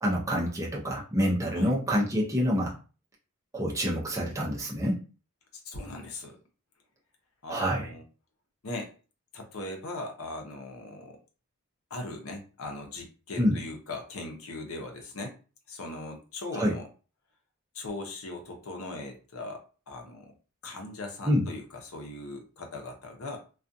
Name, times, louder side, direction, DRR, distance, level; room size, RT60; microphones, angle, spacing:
voice 1, 0.0-2.7 3.5-5.0 7.5-7.9 13.4-13.6 16.5-16.7 21.2-21.5, equal, 15° right, -4 dB, 0.6 m, -27 dB
voice 2, 5.5-6.4 7.4-8.0 8.6-8.9 9.3-11.2 11.9-15.4 15.7-16.9 17.7-20.3 20.6-23.4, left 2 dB, 85° left, 3 dB, 0.7 m, -39 dB
2.4 x 2.4 x 2.6 m, 0.35 s
head